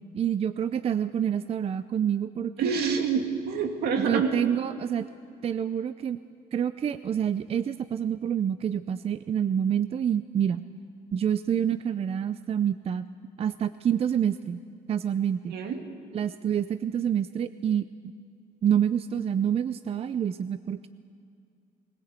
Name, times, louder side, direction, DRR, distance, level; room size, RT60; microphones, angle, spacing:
voice 1, 0.0-2.7 4.0-5.1 5.4-6.2 6.5-10.6 11.1-13.0 13.4-14.6 14.9-15.5 16.1-17.9 18.6-20.9, right 9 dB, 35° right, 13 dB, 0.5 m, -27 dB
voice 2, 2.6-4.3 15.5-15.8, right 6 dB, 70° right, 4 dB, 2.5 m, -27 dB
20.5 x 17.0 x 8.3 m, 2.4 s
cardioid pair, 110°, 17 cm